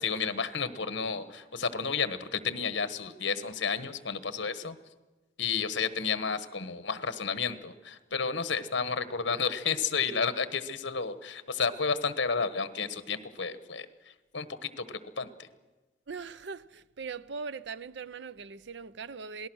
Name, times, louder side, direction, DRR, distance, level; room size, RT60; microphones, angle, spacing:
voice 1, 0.0-4.8 5.4-15.5, left 5 dB, 65° left, 1.3 m, -32 dB
voice 2, 16.1-19.5, right 5 dB, 65° right, 0.6 m, -40 dB
27.0 x 18.5 x 6.3 m
head